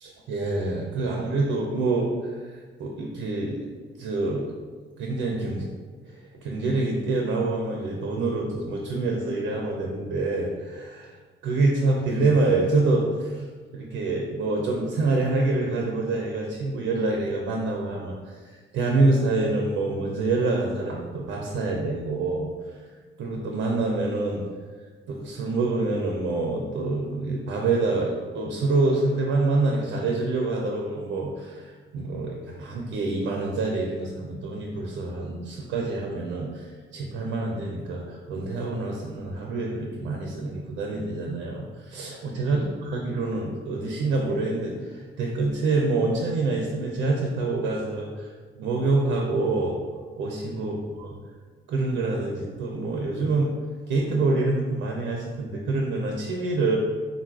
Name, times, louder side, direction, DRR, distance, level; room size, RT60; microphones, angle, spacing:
voice 1, 0.0-3.7 4.0-4.5 5.0-5.7 6.0-11.1 11.4-13.5 13.7-22.5 23.2-24.4 25.1-48.3 48.5-49.8 50.2-50.7 51.0-51.1 51.7-53.6 53.9-56.8, right 3 dB, 80° right, 0 dB, 0.4 m, -26 dB
3.6 x 2.3 x 2.3 m, 1.4 s
cardioid pair, 90°, 20 cm